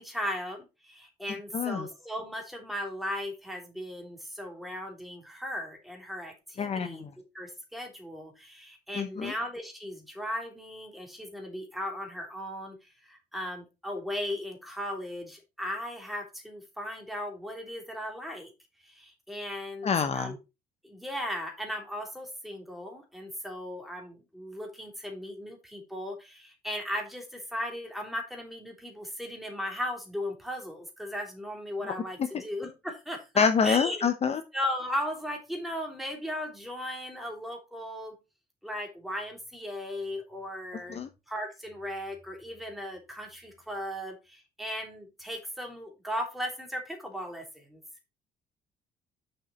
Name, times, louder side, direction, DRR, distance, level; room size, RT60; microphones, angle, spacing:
voice 1, 0.0-7.1 7.3-18.5 18.8-20.4 20.8-34.0 34.5-38.1 38.6-41.0 41.3-47.8, equal, ahead, 1 dB, 3.1 m, -37 dB
voice 2, 1.5-1.9 6.6-7.1 8.9-9.3 19.8-20.4 33.4-34.4 40.9-41.1, left 6 dB, 40° left, 9 dB, 0.8 m, -26 dB
6.7 x 6.4 x 4.2 m, 0.26 s
cardioid pair, 110°, 17 cm